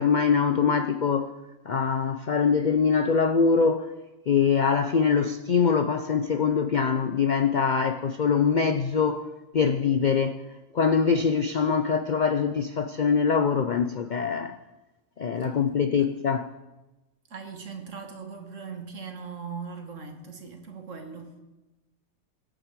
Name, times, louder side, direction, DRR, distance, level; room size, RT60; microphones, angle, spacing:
voice 1, 0.0-1.3 1.7-3.9 4.3-9.2 9.5-10.4 10.7-14.6 15.2-16.5, left 6 dB, 55° left, 0.5 m, -23 dB
voice 2, 17.3-21.4, right 5 dB, 60° right, 1.9 m, -39 dB
21.5 x 9.1 x 4.7 m
omnidirectional pair, 1.5 m